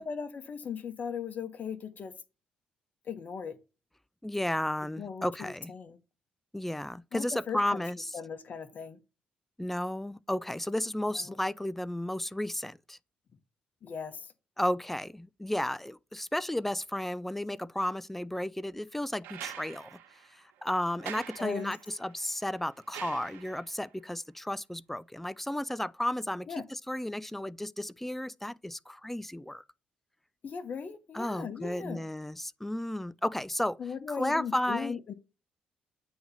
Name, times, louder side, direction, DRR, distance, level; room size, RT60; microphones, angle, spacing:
voice 1, 0.0-2.1 3.0-3.6 5.0-6.0 7.1-7.8 8.1-9.0 11.1-11.3 13.8-14.3 21.4-21.7 26.5-26.6 30.4-32.1 33.8-35.1, left 6 dB, 50° left, 1.0 m, -38 dB
voice 2, 4.2-5.7 6.5-8.1 9.6-13.0 14.6-20.0 20.3-29.6 31.1-33.8 34.1-35.0, left 1 dB, 5° left, 0.4 m, -33 dB
sound 1, 19.2-23.9 25.4-25.5, right 10 dB, 80° right, 1.2 m, -46 dB
8.5 x 3.0 x 5.5 m
supercardioid pair, 60°, 3 cm